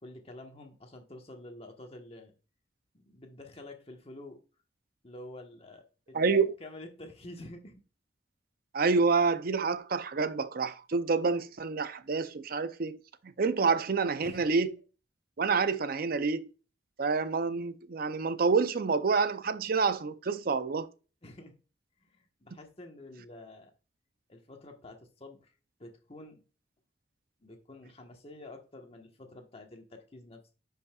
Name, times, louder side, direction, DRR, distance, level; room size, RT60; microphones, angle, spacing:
voice 1, 0.0-2.3 2.9-4.4 5.0-6.2 6.6-7.8 14.2-14.5 21.2-21.5 22.1-23.7 24.3-25.5 25.8-26.4 27.4-30.5, left 1 dB, 35° left, 1.3 m, -48 dB
voice 2, 6.1-6.5 8.7-13.0 13.2-14.7 15.4-16.5 17.0-20.9, right 4 dB, 55° right, 0.6 m, -28 dB
10.0 x 5.5 x 2.4 m
head